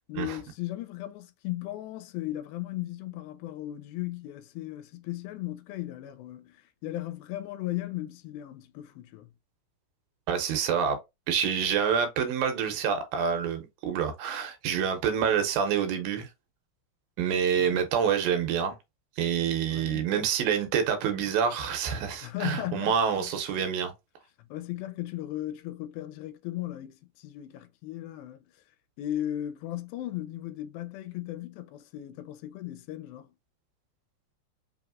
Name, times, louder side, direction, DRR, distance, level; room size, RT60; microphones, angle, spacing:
voice 1, 0.1-9.3 17.5-17.8 19.7-20.0 22.2-23.3 24.4-28.4 29.0-33.3, left 14 dB, 85° left, 2.4 m, -36 dB
voice 2, 10.3-11.0 11.3-16.3 17.2-18.8 19.2-23.9, right 7 dB, 80° right, 2.4 m, -27 dB
5.4 x 2.9 x 2.4 m
omnidirectional pair, 4.2 m